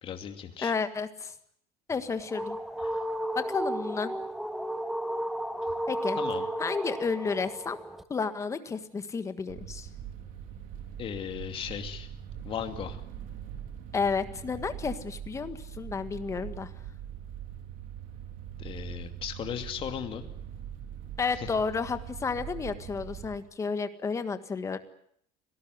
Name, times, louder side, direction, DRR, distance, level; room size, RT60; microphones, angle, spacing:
voice 1, 0.0-0.7 2.8-3.0 6.2-6.5 11.0-12.1 12.4-13.0 18.6-20.3 21.3-21.5, left 9 dB, 35° left, 6 dB, 2.7 m, -37 dB
voice 2, 0.6-1.3 1.9-2.6 3.3-4.1 5.9-6.2 6.6-7.8 8.1-9.9 13.9-16.7 21.2-24.8, left 5 dB, 20° left, 10 dB, 1.7 m, -31 dB
sound 1, 1.9-8.0, right 1 dB, ahead, 1.1 m, -33 dB
sound 2, 9.5-23.4, right 9 dB, 60° right, 3.3 m, -42 dB
25.5 x 18.5 x 9.6 m, 0.69 s
cardioid pair, 160°, 16 cm